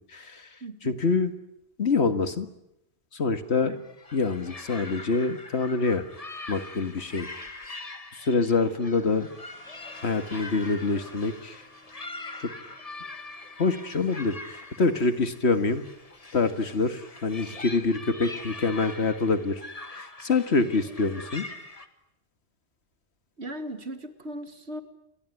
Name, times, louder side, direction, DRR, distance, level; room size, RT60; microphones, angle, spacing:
voice 1, 0.0-0.5 0.8-1.3 1.8-2.5 3.1-3.8 4.1-6.0 6.5-7.3 7.7-7.9 8.2-9.3 10.0-11.6 12.4-12.8 13.6-15.9 16.3-19.6 19.9-21.5, left 4 dB, 80° left, 10 dB, 2.1 m, -26 dB
voice 2, 0.6-1.0 3.6-3.8 20.6-20.7 23.4-24.8, right 1 dB, 80° right, 9 dB, 2.6 m, -38 dB
sound 1, 3.8-21.9, left 2 dB, 35° left, 1.8 m, -43 dB
sound 2, 8.8-16.3, left 1 dB, 10° left, 5.8 m, -54 dB
28.5 x 22.0 x 9.5 m, 0.83 s
omnidirectional pair, 1.1 m